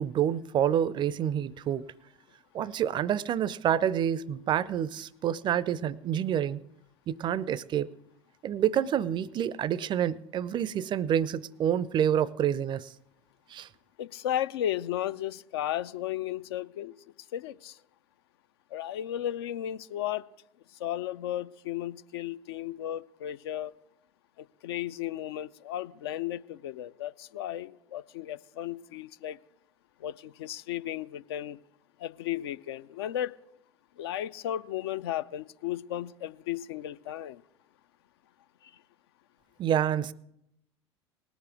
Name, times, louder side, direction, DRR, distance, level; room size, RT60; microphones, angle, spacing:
voice 1, 0.0-1.9 2.5-6.6 7.1-7.9 8.4-12.9 13.5-13.7 39.6-40.1, right 10 dB, 30° right, 22 dB, 0.4 m, -28 dB
voice 2, 14.0-16.9 17.3-17.8 18.7-20.2 20.8-23.7 24.4-29.4 30.0-31.6 32.0-33.3 34.0-37.4 38.6-38.7, left 12 dB, 60° left, 14 dB, 0.4 m, -34 dB
18.5 x 7.2 x 6.2 m, 0.79 s
figure-of-eight pair, 70°, 14 cm